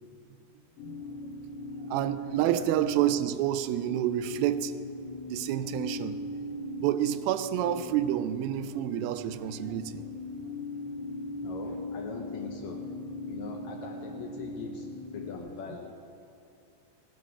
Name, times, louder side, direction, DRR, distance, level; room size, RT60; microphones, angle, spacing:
sound 1, 0.8-15.4, left 1 dB, 55° left, 2.5 m, -39 dB
voice 1, 1.9-4.7 5.3-6.2 6.8-10.0, right 12 dB, 85° right, 11 dB, 2.3 m, -29 dB
voice 2, 11.4-13.0 13.3-15.9, left 5 dB, 85° left, 2 dB, 1.6 m, -42 dB
17.0 x 11.5 x 4.8 m, 2.6 s
omnidirectional pair, 4.3 m